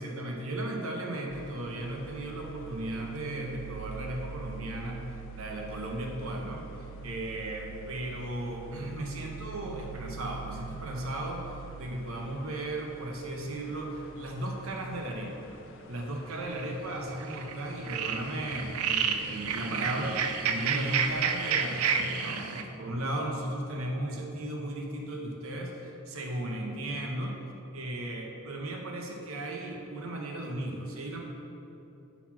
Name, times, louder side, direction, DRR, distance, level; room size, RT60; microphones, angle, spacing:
voice 1, 0.0-5.0 5.3-6.6 7.0-11.4 11.7-15.4 15.9-27.4 27.7-31.2, right 1 dB, 70° right, 1 dB, 0.9 m, -35 dB
sound 1, 1.3-21.2, right 4 dB, 60° left, 0.4 m, -46 dB
sound 2, 16.3-16.7 17.2-17.5 17.8-22.6, right 6 dB, 85° right, 0.4 m, -30 dB
5.9 x 4.1 x 5.8 m, 2.9 s
head